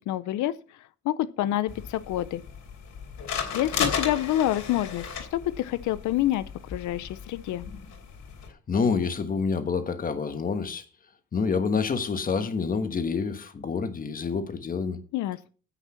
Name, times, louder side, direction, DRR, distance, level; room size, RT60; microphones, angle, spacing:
voice 1, 0.1-0.5 1.0-2.4 3.5-6.4 6.7-7.7 15.1-15.5, left 13 dB, 85° left, 0.7 m, -27 dB
sound 1, 1.7-8.5, left 6 dB, 65° left, 3.2 m, -35 dB
voice 2, 8.7-10.8 11.3-15.0, left 5 dB, 30° left, 1.3 m, -27 dB
10.0 x 8.3 x 5.7 m
cardioid pair, 160°, 29 cm